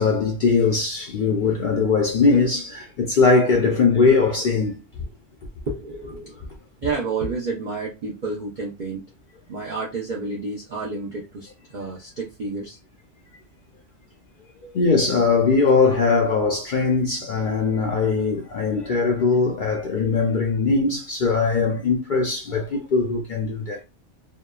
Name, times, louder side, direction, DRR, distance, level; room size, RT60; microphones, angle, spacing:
voice 1, 0.0-4.8 14.7-23.8, left 4 dB, 65° left, 0.5 m, -20 dB
voice 2, 5.7-6.4 6.8-9.1 9.5-12.8, right 3 dB, 50° right, 0.6 m, -30 dB
2.8 x 2.2 x 2.2 m
omnidirectional pair, 1.3 m